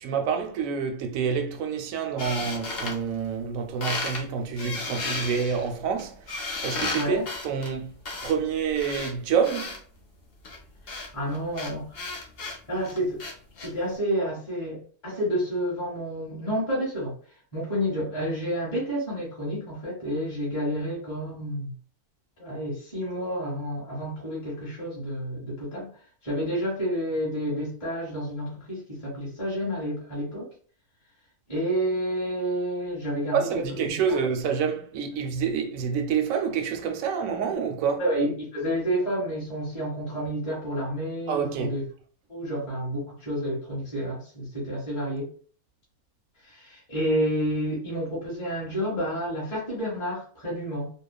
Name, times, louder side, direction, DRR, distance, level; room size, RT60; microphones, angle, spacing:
voice 1, 0.0-6.2 6.6-7.9 8.2-9.7 33.3-38.0 41.3-41.8, right 6 dB, 70° right, 0.9 m, -27 dB
sound 1, 2.2-3.5 3.8-4.2 4.6-9.8 10.4-13.7, left 3 dB, 55° left, 0.7 m, -34 dB
voice 2, 6.9-7.2 11.1-11.9 12.7-13.2 13.6-17.1 17.5-21.7 22.4-25.9 26.2-30.5 31.5-34.2 38.0-41.8 42.3-45.3 46.5-50.9, equal, 20° left, 1.2 m, -30 dB
2.9 x 2.1 x 2.2 m
omnidirectional pair, 1.6 m